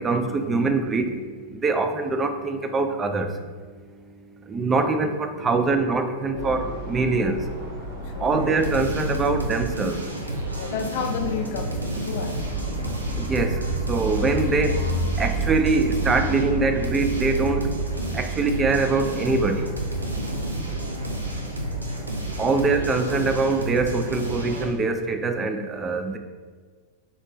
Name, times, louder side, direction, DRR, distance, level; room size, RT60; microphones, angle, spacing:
voice 1, 0.0-3.3 4.5-7.4 8.2-10.0 13.2-17.7 18.1-19.7 22.4-26.2, right 3 dB, 20° right, 6 dB, 0.3 m, -24 dB
voice 2, 5.3-5.7 6.3-6.7 8.0-8.4 10.5-12.6 22.4-22.8, left 6 dB, 50° left, 6 dB, 0.4 m, -33 dB
sound 1, 6.3-24.6, right 1 dB, 55° right, 1.1 m, -39 dB
sound 2, 8.2-24.7, right 1 dB, 80° right, 0.5 m, -31 dB
sound 3, 12.4-24.3, right 2 dB, 30° left, 0.9 m, -31 dB
4.0 x 3.1 x 3.0 m, 1.5 s
figure-of-eight pair, 90°, 0 cm